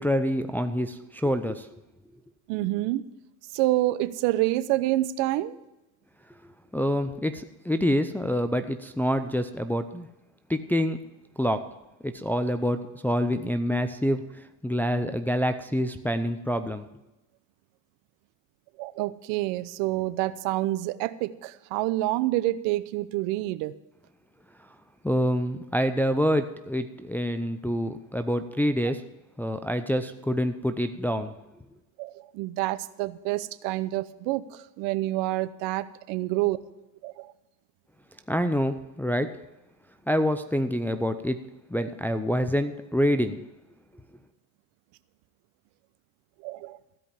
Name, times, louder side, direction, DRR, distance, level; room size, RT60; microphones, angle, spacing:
voice 1, 0.0-1.7 6.7-10.1 10.5-11.0 11.4-11.6 12.0-14.2 14.6-16.9 25.0-29.0 29.4-31.3 38.3-39.4 40.1-41.4 41.7-43.4, equal, 5° left, 8 dB, 0.5 m, -26 dB
voice 2, 2.5-3.0 3.5-5.6 18.8-23.7 32.0-36.6 37.0-37.3 46.4-46.8, right 17 dB, 65° right, 15 dB, 0.8 m, -28 dB
15.5 x 5.3 x 8.8 m, 0.95 s
supercardioid pair, 95°, 46 cm